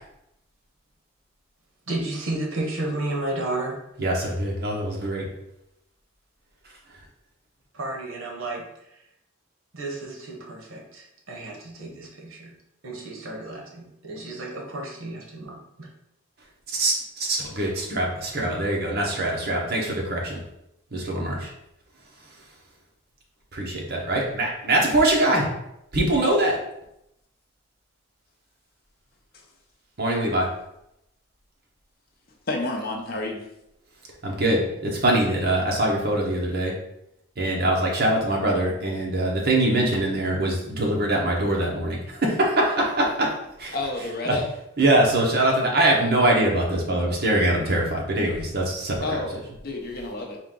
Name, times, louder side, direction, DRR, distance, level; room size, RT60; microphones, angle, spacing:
voice 1, 1.9-3.8 7.7-9.0 9.7-12.5 12.8-15.9, right 2 dB, 80° right, 0 dB, 0.9 m, -32 dB
voice 2, 4.0-5.2 16.7-20.4 20.9-21.5 23.5-25.5 25.9-26.6 30.0-30.5 34.2-36.7 37.4-43.3 43.6-43.7 44.3-44.4 44.8-49.0, right 1 dB, 50° right, -2 dB, 0.9 m, -23 dB
voice 3, 32.5-33.4 43.7-44.5 49.0-50.4, left 2 dB, 45° left, 2 dB, 0.7 m, -30 dB
4.5 x 2.4 x 3.7 m, 0.83 s
head